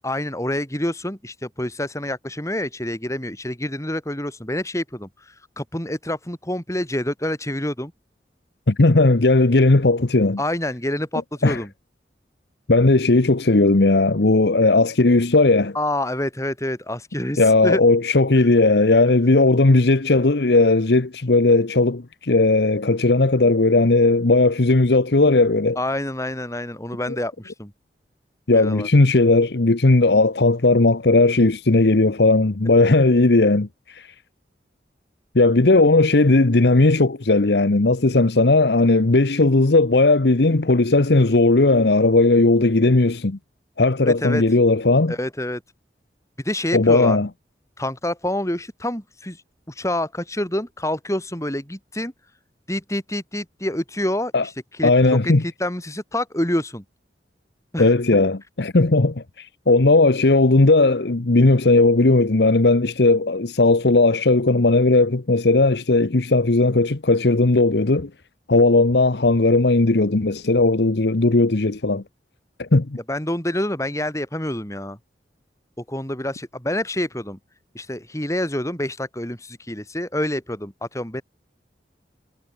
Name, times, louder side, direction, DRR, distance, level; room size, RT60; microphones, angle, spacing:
voice 1, 0.0-7.9 10.4-11.7 15.7-17.8 18.4-18.5 25.8-27.7 28.5-28.9 44.0-44.4 45.1-45.6 46.4-47.2 47.8-52.1 52.7-56.8 57.7-57.9 73.1-75.0 75.8-77.4 77.7-81.2, left 1 dB, 20° left, 7.9 m, -27 dB
voice 2, 8.7-10.4 11.4-11.6 12.7-15.7 17.4-25.8 28.5-34.1 35.3-43.4 43.8-45.1 46.7-47.3 54.3-54.4 54.8-55.4 57.8-68.1 68.5-72.0 72.6-73.0, left 2 dB, 70° left, 1.0 m, -17 dB
head